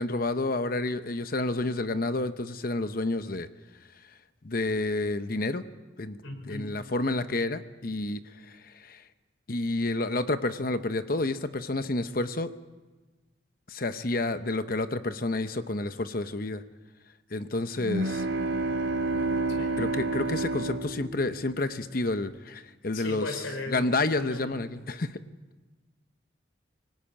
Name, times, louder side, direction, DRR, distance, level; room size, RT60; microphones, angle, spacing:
voice 1, 0.0-3.5 4.4-5.6 6.0-6.2 6.5-9.0 9.5-12.5 13.7-16.6 17.3-18.2 19.8-25.2, left 2 dB, 45° left, 10 dB, 0.9 m, -30 dB
voice 2, 6.2-6.7 19.5-19.8 22.9-23.9 24.2-24.4, left 2 dB, 85° left, 6 dB, 5.0 m, -36 dB
sound 1, 17.8-21.8, right 3 dB, 75° right, 3.9 m, -29 dB
25.5 x 18.5 x 8.8 m, 1.2 s
head